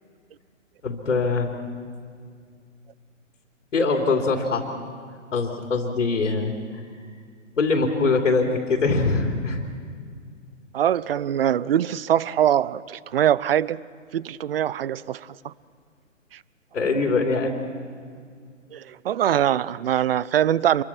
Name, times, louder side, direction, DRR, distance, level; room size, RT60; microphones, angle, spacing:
voice 1, 0.8-1.5 3.7-4.7 5.3-6.5 7.6-9.6 16.7-17.5, left 3 dB, 70° left, 2 dB, 3.1 m, -22 dB
voice 2, 10.7-13.8 14.1-15.5 18.7-20.8, right 10 dB, 50° right, 21 dB, 0.6 m, -23 dB
27.0 x 23.0 x 6.0 m, 2.1 s
hypercardioid pair, 145°, 39 cm